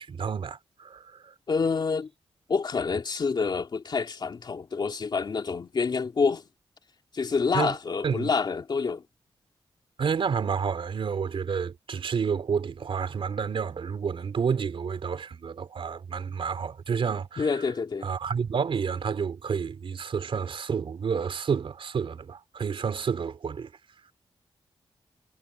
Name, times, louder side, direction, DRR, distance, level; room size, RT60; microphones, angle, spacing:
voice 1, 0.0-1.3 7.5-7.8 8.0-8.3 10.0-17.5 18.0-23.7, right 6 dB, 65° right, 3.6 m, -30 dB
voice 2, 1.5-2.1 2.5-6.4 7.1-9.0 17.4-18.1, left 5 dB, 45° left, 2.7 m, -27 dB
wide cardioid pair, 145°, 10 cm